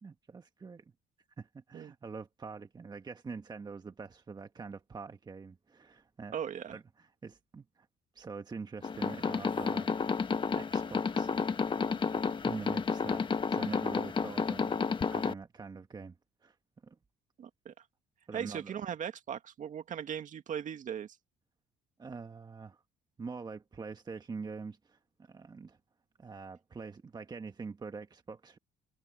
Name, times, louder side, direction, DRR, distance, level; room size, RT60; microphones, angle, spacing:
voice 1, 0.0-0.9 1.4-6.4 6.7-7.9 8.1-9.9 10.5-11.8 12.1-16.2 16.4-16.6 16.8-17.0 18.3-18.8 22.0-22.8 23.2-25.8 26.2-28.6, right 4 dB, 25° right, 1.3 m, -45 dB
voice 2, 6.3-6.8 17.4-17.8 18.3-21.2, right 8 dB, 50° right, 2.1 m, -38 dB
sound 1, 8.8-15.3, left 5 dB, 30° left, 1.2 m, -31 dB
cardioid pair, 110°, 17 cm